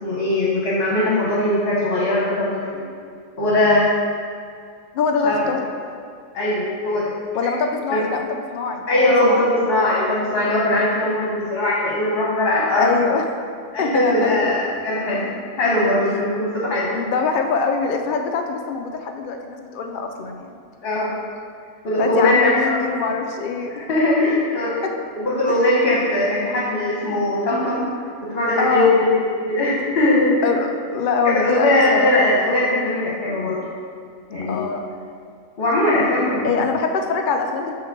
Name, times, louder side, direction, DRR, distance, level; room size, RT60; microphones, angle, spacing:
voice 1, 0.0-2.8 3.4-3.9 5.2-5.4 6.3-7.1 7.4-7.5 7.9-8.0 8.9-12.9 13.7-15.3 15.6-16.9 20.8-21.1 21.8-22.9 23.7-24.8 25.1-27.8 28.2-30.4 31.2-33.6 34.3-34.6 35.6-36.7, left 1 dB, 50° left, -6 dB, 1.1 m, -20 dB
voice 2, 4.9-5.7 7.3-8.8 9.2-9.4 12.8-13.2 13.8-14.5 16.9-20.6 22.0-23.9 24.8-24.9 28.6-28.9 30.4-32.1 34.5-34.8 36.4-37.7, left 5 dB, 75° left, 4 dB, 0.4 m, -23 dB
5.7 x 3.8 x 5.9 m, 2.3 s
omnidirectional pair, 1.4 m